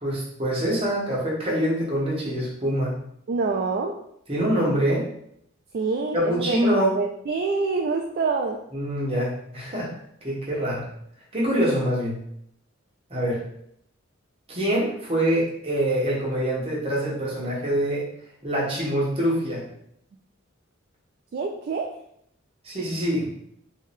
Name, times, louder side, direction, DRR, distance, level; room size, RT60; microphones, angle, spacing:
voice 1, 0.0-2.9 4.3-5.0 6.1-6.9 8.7-9.9 10.2-10.8 11.3-12.2 13.1-13.4 14.5-18.1 18.4-19.6 22.6-23.3, equal, 30° right, -5 dB, 1.1 m, -25 dB
voice 2, 3.3-4.0 5.7-6.6 7.0-8.6 21.3-21.9, right 4 dB, 50° right, 1 dB, 0.3 m, -26 dB
3.3 x 2.7 x 3.4 m, 0.71 s
head